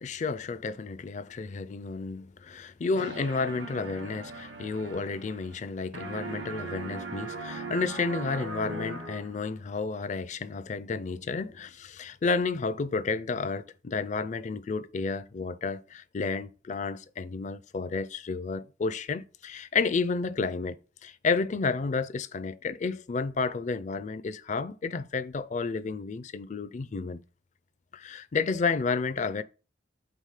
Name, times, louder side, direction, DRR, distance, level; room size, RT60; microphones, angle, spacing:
voice 1, 0.0-20.8 21.0-27.2 27.9-29.4, left 4 dB, 40° left, 0.4 m, -31 dB
sound 1, 2.9-5.7 5.9-9.5, right 3 dB, 80° right, 1.1 m, -39 dB
4.8 x 4.0 x 5.7 m
head